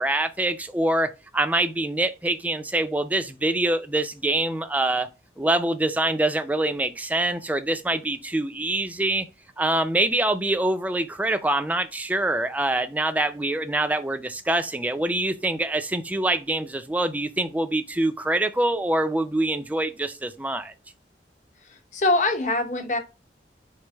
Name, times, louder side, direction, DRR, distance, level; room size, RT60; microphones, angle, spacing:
voice 1, 0.0-5.1 5.4-9.3 9.6-20.7, right 1 dB, 10° right, 0.4 m, -25 dB
voice 2, 21.7-23.0, left 2 dB, 40° left, 0.9 m, -23 dB
4.4 x 3.2 x 3.4 m
head